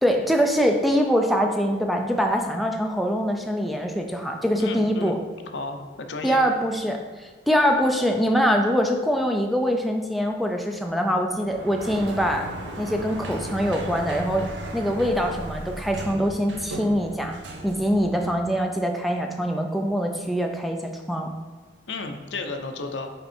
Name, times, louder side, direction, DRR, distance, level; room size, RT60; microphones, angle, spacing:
voice 1, 0.0-5.2 6.2-12.5 12.8-14.5 14.7-17.4 17.6-21.3, equal, ahead, 3 dB, 0.4 m, -23 dB
voice 2, 4.6-5.2 5.5-6.4 21.9-23.1, left 3 dB, 75° left, 5 dB, 0.7 m, -33 dB
Sliding door, 11.4-18.5, right 1 dB, 75° right, 0.7 m, -36 dB
5.5 x 4.5 x 4.3 m, 1.5 s
head